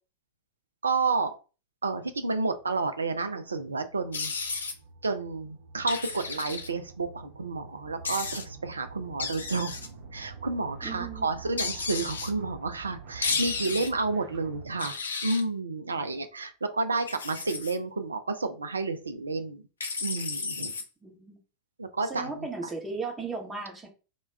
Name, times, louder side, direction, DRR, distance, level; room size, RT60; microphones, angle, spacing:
voice 1, 0.8-1.3 1.8-4.3 5.0-9.8 10.1-19.6 20.0-20.7 21.8-22.3, right 3 dB, 75° right, 8 dB, 0.3 m, -30 dB
sound 1, 2.2-14.7, right 5 dB, 50° right, 0.7 m, -46 dB
sound 2, 4.1-4.7 5.9-6.7 8.0-8.4 9.2-9.9 11.6-12.3 13.2-13.9 14.8-15.4 17.0-17.8 19.8-20.8, left 4 dB, 70° left, 0.4 m, -33 dB
voice 2, 10.8-11.3 21.0-21.4 22.0-23.9, right 4 dB, 15° right, 1 dB, 0.8 m, -36 dB
2.2 x 2.2 x 3.4 m, 0.34 s
figure-of-eight pair, 90°, 0 cm